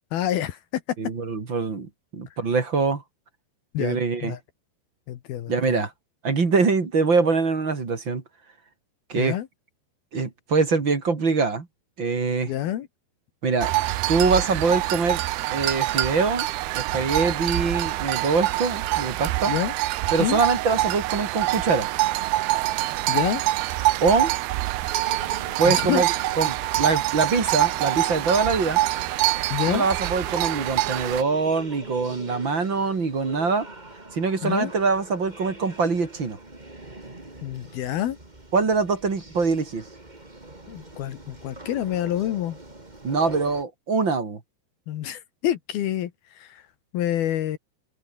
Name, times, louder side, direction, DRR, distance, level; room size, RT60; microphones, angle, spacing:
voice 1, 0.1-1.0 3.7-4.4 5.1-5.8 9.2-9.5 12.4-12.9 19.5-19.7 20.2-20.4 23.1-23.4 25.7-26.0 29.5-29.9 34.4-34.7 37.4-38.2 40.7-42.6 44.9-46.6 46.9-47.6, left 12 dB, 65° left, 3.0 m, -27 dB
voice 2, 1.0-3.0 3.8-4.4 5.5-5.9 6.2-8.2 9.1-9.4 10.1-11.7 12.0-12.5 13.4-13.7 14.1-15.2 15.5-16.5 16.7-19.6 20.1-21.9 24.0-24.3 25.6-26.1 26.3-28.8 29.7-33.7 34.1-36.4 38.5-39.9 43.0-44.4, right 4 dB, 30° right, 3.1 m, -23 dB
sound 1, 13.6-31.2, right 17 dB, 75° right, 2.6 m, -25 dB
sound 2, 24.9-43.6, right 2 dB, 10° right, 2.6 m, -44 dB
omnidirectional pair, 5.0 m